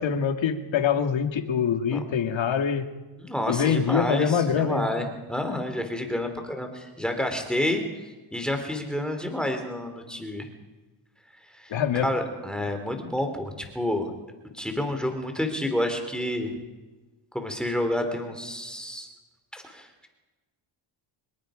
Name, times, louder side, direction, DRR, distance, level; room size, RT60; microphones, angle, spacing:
voice 1, 0.0-2.9 3.5-4.9 11.7-12.1, left 7 dB, 65° left, 6 dB, 2.2 m, -24 dB
voice 2, 3.2-7.8 8.3-10.5 11.6-14.1 14.5-16.5 17.3-19.1 19.5-19.9, left 1 dB, ahead, 5 dB, 3.4 m, -29 dB
26.0 x 21.5 x 5.1 m, 1.2 s
cardioid pair, 110°, 50 cm